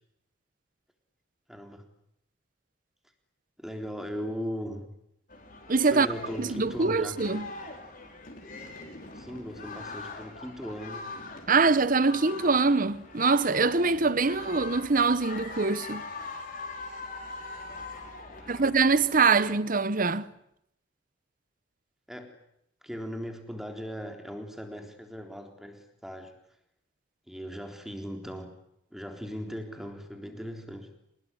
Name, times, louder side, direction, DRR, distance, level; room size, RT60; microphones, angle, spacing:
voice 1, 1.5-1.9 3.6-4.9 5.9-7.2 9.1-11.1 18.3-18.7 22.1-22.3 22.8-26.4 27.3-28.5 28.9-30.9, equal, ahead, 3.7 m, -38 dB
sound 1, 5.3-19.6, left 3 dB, 45° left, 5.3 m, -42 dB
voice 2, 5.7-6.1 6.4-7.5 11.5-16.1 18.5-20.3, right 4 dB, 45° right, 1.0 m, -24 dB
27.0 x 20.5 x 9.7 m
head